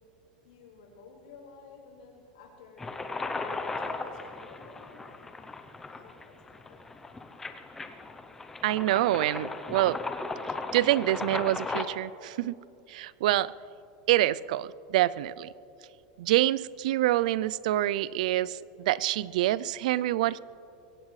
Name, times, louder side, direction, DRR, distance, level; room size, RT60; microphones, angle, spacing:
voice 1, 0.4-5.2 5.9-6.8, left 4 dB, 85° left, -1 dB, 4.6 m, -52 dB
sound 1, 2.8-11.8, left 3 dB, 10° left, 0.6 m, -37 dB
voice 2, 8.6-10.0 10.7-12.5 12.9-13.5 14.1-15.5 16.2-20.4, right 15 dB, 70° right, 20 dB, 0.4 m, -26 dB
23.0 x 16.5 x 3.2 m, 2.8 s
supercardioid pair, 170°, 4 cm